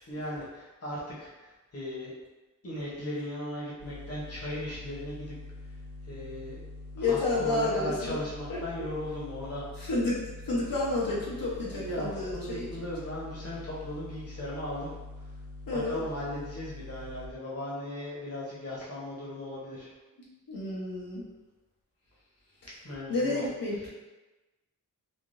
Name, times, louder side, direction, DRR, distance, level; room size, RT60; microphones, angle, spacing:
voice 1, 0.1-2.1 2.6-5.3 5.7-5.8 6.0-6.6 7.0-9.9 11.7-15.3 15.7-19.9 22.8-23.9, left 1 dB, 45° left, -6 dB, 1.0 m, -37 dB
sound 1, 3.8-17.3, left 2 dB, 45° right, 0.4 m, -44 dB
voice 2, 7.0-8.1 8.5-8.6 9.9-12.7 15.7-16.0 20.5-21.2 23.1-23.9, left 2 dB, 85° left, -7 dB, 0.9 m, -30 dB
3.6 x 2.3 x 2.5 m, 1.1 s
wide cardioid pair, 110°, 33 cm